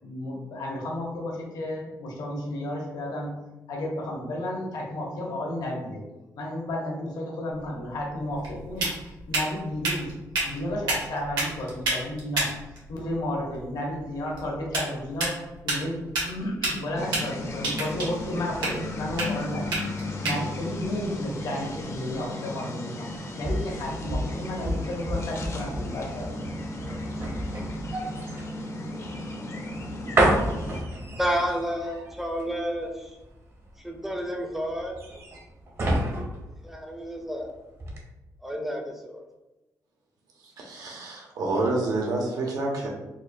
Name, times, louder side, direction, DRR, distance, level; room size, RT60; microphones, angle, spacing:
voice 1, 0.0-3.4 3.7-6.0 6.4-10.1 10.4-12.5 12.9-23.1 23.4-26.3, left 1 dB, 80° left, -2 dB, 1.0 m, -32 dB
sound 1, 7.5-22.2, right 2 dB, 85° right, 1.3 m, -33 dB
sound 2, 17.0-30.8, left 1 dB, 45° left, 0.5 m, -35 dB
sound 3, 23.4-37.4 37.8-38.0, right 1 dB, 40° right, 0.8 m, -30 dB
voice 2, 31.2-33.2 33.8-35.0 36.6-37.5 38.4-39.2, equal, 5° right, 2 dB, 0.5 m, -30 dB
voice 3, 40.4-42.9, right 2 dB, 65° right, -1 dB, 0.9 m, -28 dB
4.1 x 2.3 x 2.6 m, 1.0 s
cardioid pair, 125°, 7 cm